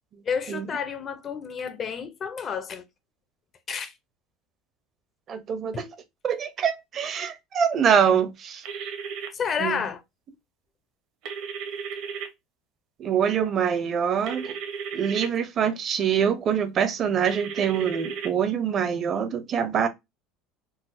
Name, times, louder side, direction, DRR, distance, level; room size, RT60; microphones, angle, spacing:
voice 1, 0.3-2.8 3.7-3.9 5.7-5.8 9.3-10.0, left 6 dB, 25° left, 0.4 m, -30 dB
voice 2, 5.3-5.9 6.2-8.6 9.6-9.8 13.0-14.5 14.9-19.9, right 7 dB, 30° right, 0.5 m, -24 dB
sound 1, 8.6-9.3 11.2-12.3 14.3-15.3 17.3-18.3, right 6 dB, 60° right, 0.8 m, -34 dB
3.9 x 2.3 x 2.5 m
cardioid pair, 150°, 0 cm